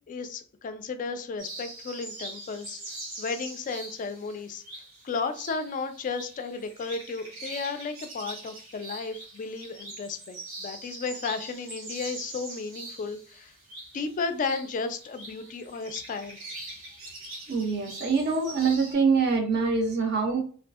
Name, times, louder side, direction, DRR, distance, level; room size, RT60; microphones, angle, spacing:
voice 1, 0.1-2.8 3.2-4.6 5.0-13.5 13.9-16.4, left 4 dB, 40° left, 9 dB, 0.3 m, -34 dB
sound 1, 1.4-18.9, right 2 dB, 90° right, 1.1 m, -43 dB
voice 2, 17.5-20.4, right 5 dB, 50° right, 3 dB, 0.5 m, -24 dB
2.5 x 2.4 x 2.3 m, 0.43 s
head